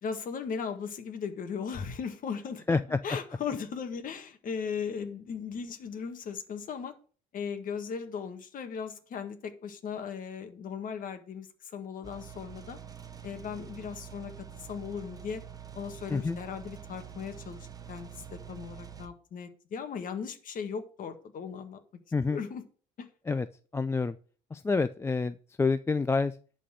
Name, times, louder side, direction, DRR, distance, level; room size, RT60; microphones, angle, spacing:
voice 1, 0.0-6.9 7.3-12.8 13.2-15.4 15.7-21.8 22.3-22.6 23.0-23.1, left 6 dB, 55° left, 7 dB, 1.7 m, -37 dB
voice 2, 2.7-3.0 16.1-16.4 22.1-22.4 23.3-23.5 23.7-24.2 24.5-26.3, left 4 dB, 15° left, 12 dB, 0.4 m, -28 dB
sound 1, 12.0-19.1, right 8 dB, 20° right, 1.0 m, -46 dB
11.0 x 4.3 x 7.7 m, 0.41 s
cardioid pair, 110°, 17 cm